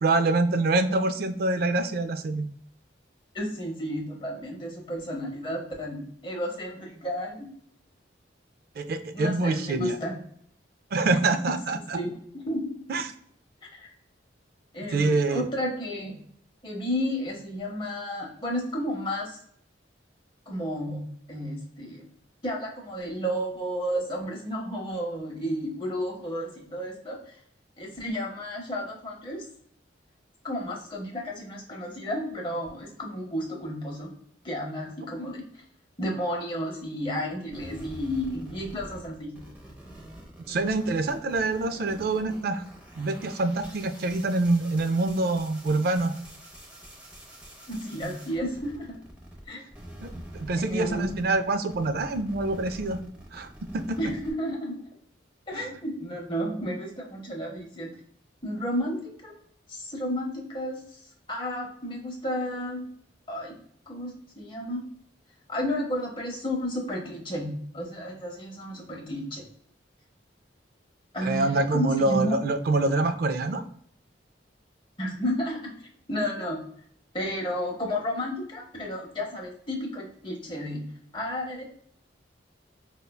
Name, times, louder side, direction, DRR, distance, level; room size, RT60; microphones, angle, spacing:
voice 1, 0.0-2.5 8.8-10.0 10.9-12.0 12.9-13.1 14.9-15.5 40.5-42.6 43.0-46.1 50.0-53.0 53.3-54.0 55.5-55.7 71.2-73.6, right 2 dB, 50° right, 9 dB, 0.3 m, -26 dB
voice 2, 3.3-7.5 9.1-10.2 11.9-12.8 13.7-13.9 14.7-16.2 16.6-19.4 20.5-21.0 21.3-22.1 22.4-27.3 27.8-29.4 30.4-34.1 34.4-35.4 36.0-39.4 47.7-49.0 49.5-49.6 50.5-51.2 54.0-54.8 55.5-57.9 58.4-59.0 59.2-59.3 59.7-60.8 61.3-62.8 63.3-63.5 63.9-64.8 65.5-69.4 71.1-72.4 75.0-75.7 76.1-76.6 77.1-80.8 81.1-81.6, equal, 25° left, -1 dB, 0.8 m, -32 dB
sound 1, 37.5-49.4 49.7-54.3, right 1 dB, 10° right, 0.7 m, -46 dB
5.0 x 2.2 x 2.2 m, 0.64 s
head